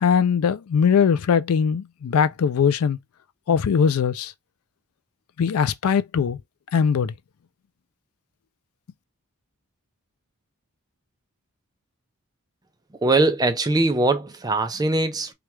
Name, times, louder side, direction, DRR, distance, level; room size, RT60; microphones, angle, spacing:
voice 1, 0.0-3.0 3.5-4.3 5.4-6.4 6.7-7.1, left 6 dB, 70° left, 0.4 m, -20 dB
voice 2, 13.0-15.3, right 2 dB, 15° right, 0.5 m, -21 dB
3.3 x 2.3 x 3.0 m
head